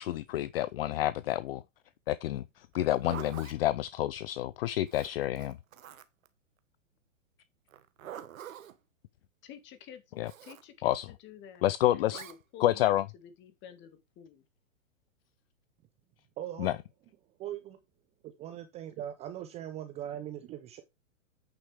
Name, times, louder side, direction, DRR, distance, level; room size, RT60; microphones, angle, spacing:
voice 1, 0.0-1.6 2.1-5.6 10.2-10.3 10.8-11.1 11.6-12.2 12.6-13.0 16.6-16.8, left 14 dB, 50° left, 0.5 m, -29 dB
Zipper (clothing), 2.7-3.6 4.9-6.3 7.7-8.8 10.2-10.6 12.1-12.4, right 10 dB, 75° right, 1.4 m, -46 dB
voice 2, 9.4-10.0 10.4-14.4, left 9 dB, 30° left, 1.9 m, -50 dB
voice 3, 16.4-16.7 17.4-17.8 18.2-20.8, right 11 dB, 15° right, 0.5 m, -40 dB
9.0 x 6.6 x 3.4 m
hypercardioid pair, 135°, 40 cm